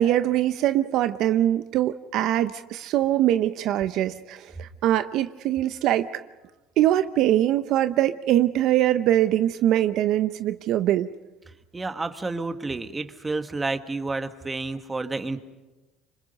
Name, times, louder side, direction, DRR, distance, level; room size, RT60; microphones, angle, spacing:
voice 1, 0.0-6.2 6.8-11.1, right 12 dB, 60° right, 11 dB, 0.7 m, -22 dB
voice 2, 11.7-15.5, right 3 dB, 15° right, 9 dB, 1.5 m, -30 dB
27.0 x 25.5 x 5.3 m, 1.1 s
supercardioid pair, 105°, 0 cm